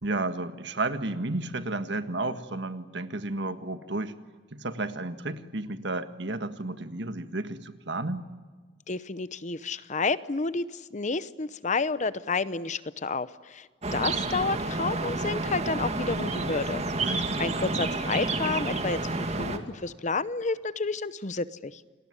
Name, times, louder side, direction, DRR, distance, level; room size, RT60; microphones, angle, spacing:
voice 1, 0.0-4.2 4.5-8.3 17.0-17.7, right 2 dB, 60° right, 10 dB, 1.7 m, -32 dB
voice 2, 8.9-16.8 17.1-21.8, left 4 dB, 40° left, 16 dB, 0.8 m, -30 dB
sound 1, 13.8-19.6, right 2 dB, 35° right, 2.1 m, -30 dB
29.0 x 20.0 x 9.8 m, 1.5 s
head